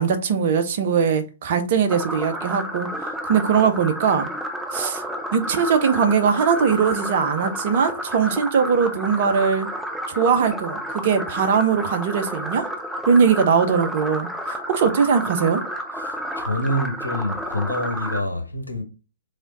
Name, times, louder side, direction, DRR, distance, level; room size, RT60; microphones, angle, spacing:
voice 1, 0.0-4.3 4.7-5.0 5.3-9.7 10.1-12.6 13.1-15.6, right 6 dB, 45° right, 0.8 m, -20 dB
sound 1, 1.9-18.2, equal, ahead, 0.8 m, -31 dB
voice 2, 15.9-18.8, left 1 dB, 85° left, 1.0 m, -27 dB
3.6 x 3.6 x 4.0 m
figure-of-eight pair, 120°, 0 cm